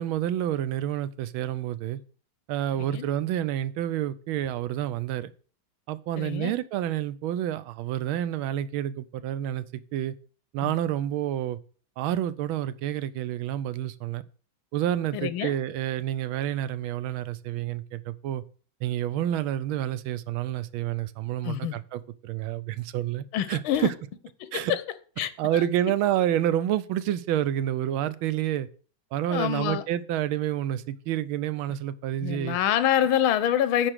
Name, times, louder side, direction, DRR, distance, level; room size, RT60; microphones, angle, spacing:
voice 1, 0.0-2.0 2.5-5.3 5.9-10.1 10.5-11.6 12.0-14.2 14.7-18.4 18.8-23.9 24.5-24.7 25.4-28.7 29.1-32.6, right 11 dB, 85° right, 1.4 m, -29 dB
voice 2, 6.2-6.5 10.6-10.7 15.1-15.5 21.4-21.8 23.3-23.9 24.4-24.8 25.2-25.6 29.3-29.8 32.2-33.9, left 10 dB, 80° left, 1.6 m, -26 dB
9.9 x 4.5 x 6.5 m
omnidirectional pair, 2.2 m